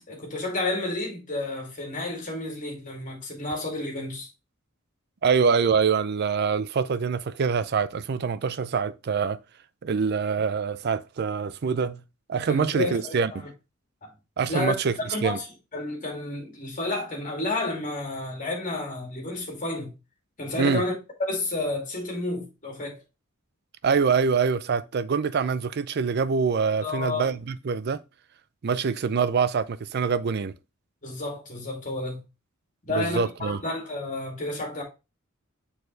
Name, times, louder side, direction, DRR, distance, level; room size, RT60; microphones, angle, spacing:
voice 1, 0.0-4.3 12.5-13.2 14.0-14.1 14.5-14.7 15.1-15.5 15.7-19.9 20.4-20.9 21.2-23.0 26.8-27.3 31.0-32.2 32.8-34.8, left 2 dB, 40° left, 2.4 m, -31 dB
voice 2, 5.2-9.4 9.8-12.0 12.3-13.5 14.4-14.9 15.2-15.4 20.6-20.8 23.8-28.0 28.6-30.5 32.9-33.6, right 5 dB, 50° right, 0.4 m, -25 dB
6.5 x 4.4 x 3.3 m
head